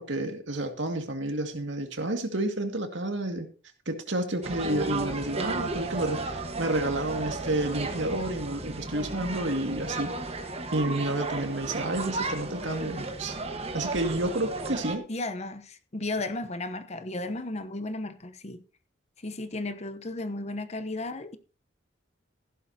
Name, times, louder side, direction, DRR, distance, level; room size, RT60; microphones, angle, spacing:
voice 1, 0.0-3.5 3.9-10.1 10.7-13.4 13.7-15.0, right 1 dB, 75° right, 2.1 m, -30 dB
sound 1, 4.4-15.0, right 2 dB, 30° right, 1.4 m, -34 dB
voice 2, 15.1-18.6 19.2-21.4, left 2 dB, 35° left, 0.9 m, -34 dB
15.0 x 11.5 x 2.8 m
head